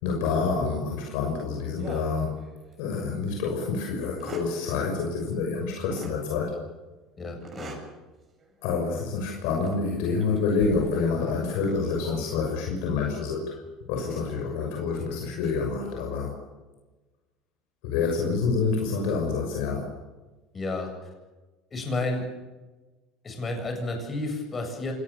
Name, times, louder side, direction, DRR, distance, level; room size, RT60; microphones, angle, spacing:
voice 1, 0.0-2.4 2.8-6.5 8.6-13.6 13.9-16.3 17.8-19.9, left 4 dB, 80° left, 0 dB, 6.4 m, -27 dB
sound 1, 1.8-2.9 3.3-3.4 4.0-4.6 5.9-6.2 7.4-7.9 8.4-8.6 9.5-9.8 10.2-12.5 14.0-14.2 15.2-15.5, right 2 dB, 30° right, 7.4 m, -43 dB
voice 2, 7.2-7.8 20.5-20.9 21.7-22.3 23.2-24.9, left 2 dB, 25° left, 3 dB, 8.0 m, -31 dB
27.0 x 19.5 x 7.0 m, 1.2 s
supercardioid pair, 115°, 0 cm